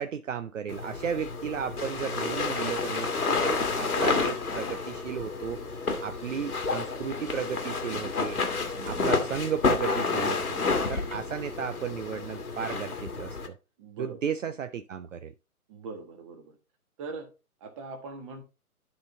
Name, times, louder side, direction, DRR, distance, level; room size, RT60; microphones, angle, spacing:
voice 1, 0.0-8.4 8.8-10.6 10.9-13.6 14.0-15.3, right 7 dB, 55° right, 0.6 m, -34 dB
sound 1, 0.7-13.5, left 4 dB, 80° left, 1.7 m, -30 dB
voice 2, 13.8-14.3 15.7-16.5 17.0-17.3 17.6-18.4, right 4 dB, 20° right, 1.3 m, -41 dB
11.5 x 3.9 x 3.8 m
figure-of-eight pair, 140°, 44 cm